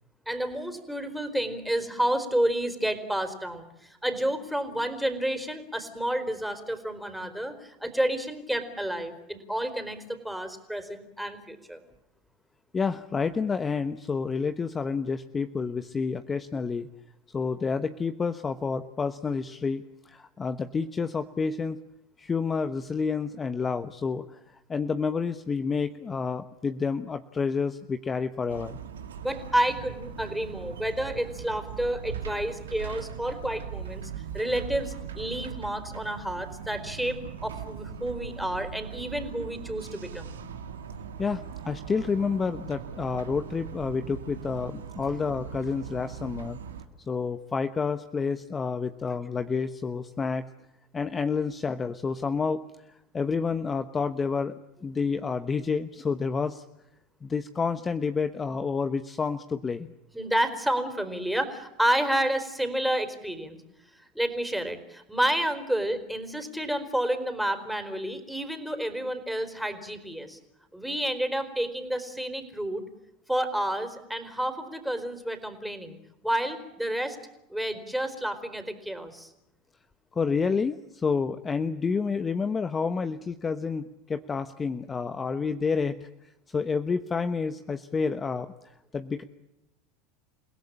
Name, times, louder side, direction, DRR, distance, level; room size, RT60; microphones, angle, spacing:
voice 1, 0.3-11.8 29.2-40.4 60.1-63.6 63.9-70.4 70.7-72.8 73.3-76.0 76.2-77.2 77.5-79.3, right 1 dB, ahead, 8 dB, 4.5 m, -30 dB
voice 2, 12.7-16.9 17.3-21.8 22.2-28.8 41.2-46.6 47.1-50.5 50.9-54.5 54.8-56.6 57.2-59.9 80.1-86.1 86.5-88.5 88.9-89.2, left 5 dB, 25° left, 11 dB, 1.1 m, -29 dB
sound 1, 28.5-46.8, right 7 dB, 90° right, 2.2 m, -40 dB
29.5 x 17.0 x 8.9 m, 0.89 s
hypercardioid pair, 90°, 0 cm